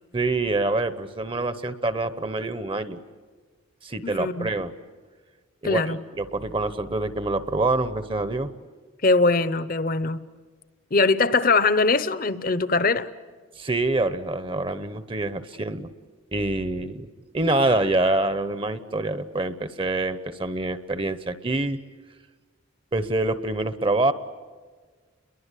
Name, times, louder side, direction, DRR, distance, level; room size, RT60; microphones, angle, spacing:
voice 1, 0.1-3.0 3.8-4.7 5.6-8.5 13.6-15.9 16.3-17.1 17.3-21.8 22.9-24.1, right 2 dB, 25° right, 0.9 m, -26 dB
voice 2, 4.0-4.5 5.6-6.0 9.0-10.2 10.9-13.1, left 3 dB, 45° left, 0.9 m, -21 dB
30.0 x 23.0 x 8.4 m
head